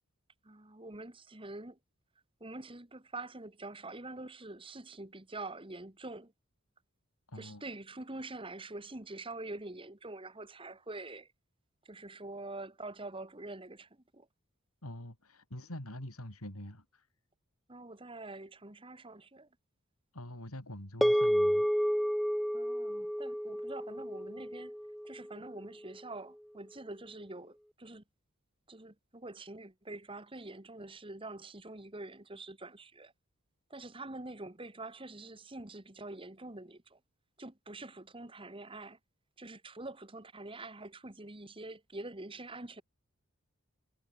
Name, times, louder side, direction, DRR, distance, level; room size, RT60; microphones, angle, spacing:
voice 1, 0.4-1.8 2.4-6.3 7.4-11.3 11.8-14.3 17.7-19.5 22.5-24.7 25.0-28.0 28.7-33.1 33.7-37.0 37.4-39.0 39.4-42.8, right 2 dB, 25° right, 1.8 m, -45 dB
voice 2, 7.3-7.6 14.8-17.1 20.1-21.7, left 1 dB, 90° left, 5.6 m, -45 dB
sound 1, 21.0-25.5, equal, ahead, 0.5 m, -31 dB
head